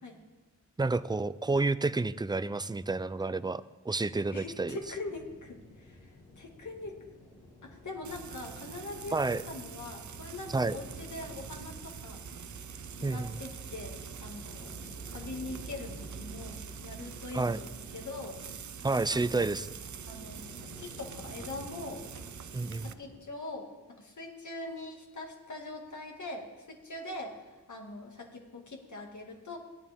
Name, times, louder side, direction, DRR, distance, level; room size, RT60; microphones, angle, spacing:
voice 1, 0.8-4.8 9.1-9.4 10.5-10.8 13.0-13.4 17.3-17.6 18.8-19.7 22.5-22.9, right 3 dB, 15° right, 15 dB, 0.4 m, -30 dB
sound 1, 4.3-23.2, left 2 dB, 90° left, 2.0 m, -52 dB
voice 2, 4.3-6.1 6.4-7.0 7.6-12.2 13.0-14.7 15.1-18.4 19.0-19.5 20.1-20.4 20.8-22.0 22.7-29.6, left 2 dB, 70° left, 0 dB, 2.3 m, -42 dB
Frying (food), 8.0-22.9, right 7 dB, 70° right, 0.6 m, -44 dB
18.0 x 11.0 x 3.7 m, 1.2 s
wide cardioid pair, 85°, 30 cm